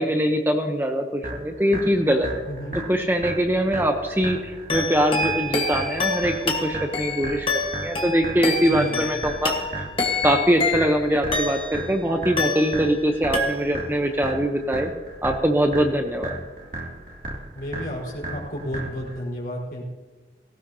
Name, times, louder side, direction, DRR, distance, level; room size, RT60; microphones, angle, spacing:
voice 1, 0.0-2.3 2.9-7.5 7.8-9.8 10.2-14.9 15.2-16.3, equal, 10° right, 4 dB, 0.8 m, -22 dB
sound 1, 1.2-19.2, right 2 dB, 50° right, 2.6 m, -35 dB
voice 2, 2.5-2.8 8.6-9.2 17.5-19.8, equal, 55° left, -3 dB, 4.8 m, -32 dB
sound 2, 4.7-11.9 12.4-13.1 13.3-14.0, left 3 dB, 30° left, 1.4 m, -27 dB
18.0 x 16.5 x 2.9 m, 1.3 s
head